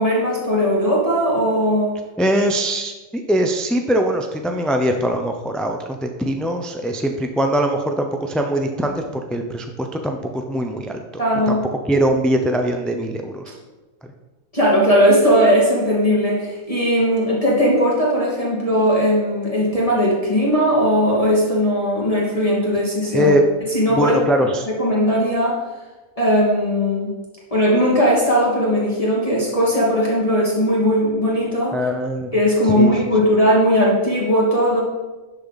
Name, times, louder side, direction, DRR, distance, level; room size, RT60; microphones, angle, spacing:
voice 1, 0.0-2.0 11.2-11.6 13.5-13.6 14.5-23.4 23.6-24.2 24.7-25.6 26.2-27.2 27.5-31.8 32.3-34.8, equal, 25° left, -6 dB, 2.5 m, -18 dB
voice 2, 2.2-11.2 11.5-11.6 11.9-13.4 23.1-23.4 23.9-24.7 31.7-32.3 32.8-32.9, equal, ahead, 4 dB, 0.4 m, -21 dB
11.5 x 6.9 x 4.1 m, 1.2 s
omnidirectional pair, 1.4 m